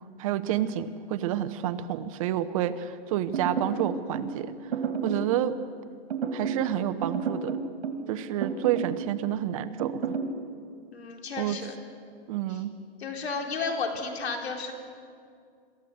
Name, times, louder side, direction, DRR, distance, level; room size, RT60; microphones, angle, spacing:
voice 1, 0.2-4.7 5.0-5.6 6.3-7.6 8.1-10.0 11.4-11.6 12.3-12.7, right 11 dB, 35° right, 12 dB, 0.8 m, -29 dB
sound 1, 3.3-4.3 4.7-5.3 6.1-6.7 7.0-8.1 8.4-9.0 9.8-10.3, right 5 dB, 70° right, 2.8 m, -30 dB
voice 2, 10.9-11.7 13.0-14.7, left 4 dB, 85° left, 3 dB, 4.0 m, -32 dB
27.0 x 14.0 x 7.9 m, 2.2 s
hypercardioid pair, 155°, 31 cm